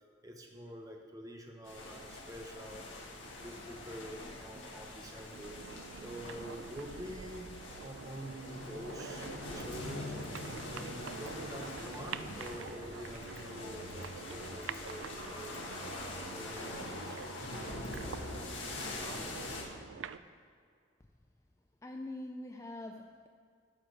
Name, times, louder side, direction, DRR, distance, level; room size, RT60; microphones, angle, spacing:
voice 1, 0.2-2.8 3.2-5.6 5.9-7.5 7.8-15.7 16.3-17.9, equal, 20° right, 2 dB, 1.0 m, -47 dB
sound 1, 1.7-19.6, left 2 dB, 80° left, 1.5 m, -44 dB
sound 2, 5.3-20.2, right 7 dB, 80° right, 0.4 m, -47 dB
sound 3, 8.5-19.4, left 1 dB, 60° left, 1.9 m, -50 dB
voice 2, 21.8-23.3, left 1 dB, 15° left, 4 dB, 0.3 m, -43 dB
12.5 x 4.6 x 6.4 m, 2.2 s
head